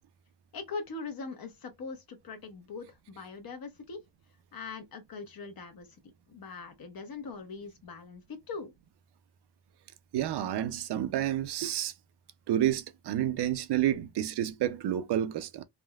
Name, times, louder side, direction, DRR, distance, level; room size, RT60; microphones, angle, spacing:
voice 1, 0.5-4.0 4.5-5.9 6.3-8.7, left 4 dB, 55° left, 1.0 m, -41 dB
voice 2, 10.1-11.9 12.5-15.6, right 11 dB, 65° right, 0.6 m, -29 dB
3.4 x 2.1 x 2.3 m
cardioid pair, 100°, 44 cm